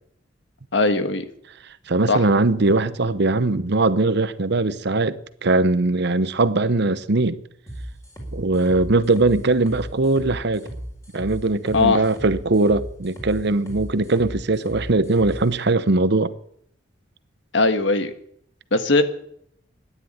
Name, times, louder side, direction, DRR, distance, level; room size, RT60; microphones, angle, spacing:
voice 1, 0.7-1.3 2.1-2.2 11.7-12.0 17.5-18.1 18.7-19.0, left 3 dB, 65° left, 1.5 m, -19 dB
voice 2, 1.9-7.4 8.3-10.7 11.1-16.3, right 2 dB, 60° right, 0.9 m, -20 dB
sound 1, 7.7-15.4, right 1 dB, 15° left, 4.4 m, -35 dB
13.0 x 10.5 x 9.9 m
head